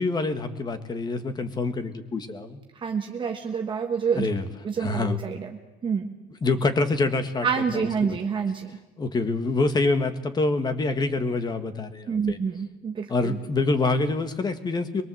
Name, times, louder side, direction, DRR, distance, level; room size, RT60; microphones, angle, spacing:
voice 1, 0.0-2.6 4.1-4.5 4.8-5.2 6.4-7.5 7.7-8.1 9.0-12.4 13.1-15.0, left 3 dB, 25° left, 9 dB, 1.6 m, -26 dB
voice 2, 2.8-4.3 4.6-5.5 5.8-6.1 7.4-8.7 12.1-13.4, right 6 dB, 25° right, 3 dB, 1.4 m, -27 dB
23.5 x 22.5 x 7.8 m, 1.1 s
cardioid pair, 160°, 18 cm